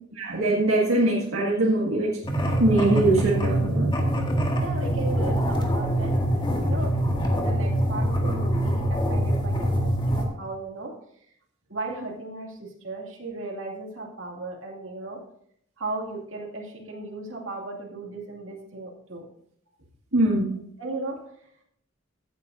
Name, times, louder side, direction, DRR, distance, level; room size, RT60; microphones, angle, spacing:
voice 1, 0.2-2.1 2.6-3.9 20.1-20.5, right 2 dB, 90° right, -3 dB, 1.9 m, -22 dB
sound 1, 2.2-10.3, equal, 25° left, 1.8 m, -24 dB
voice 2, 4.6-6.2 6.6-10.9 11.7-15.2 15.8-19.3 20.8-21.2, right 2 dB, 75° right, 0 dB, 2.5 m, -36 dB
16.0 x 9.2 x 2.7 m, 0.70 s
head